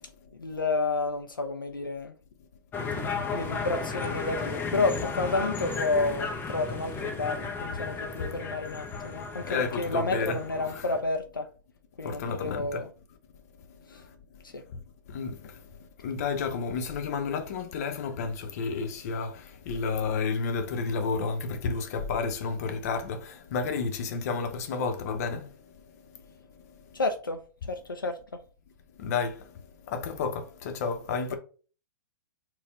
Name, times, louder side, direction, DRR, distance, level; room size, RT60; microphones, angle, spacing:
voice 1, 0.4-2.1 2.9-11.5 12.0-12.9 14.5-14.6 26.9-27.4 27.7-28.2, left 3 dB, 85° left, 0.5 m, -30 dB
sound 1, 2.7-11.0, left 4 dB, 20° left, 0.6 m, -34 dB
voice 2, 9.4-10.4 12.0-12.8 15.1-15.6 16.0-25.5 29.0-29.4 29.9-31.3, left 5 dB, 50° left, 0.8 m, -31 dB
4.1 x 2.3 x 3.9 m
figure-of-eight pair, 105°, 11 cm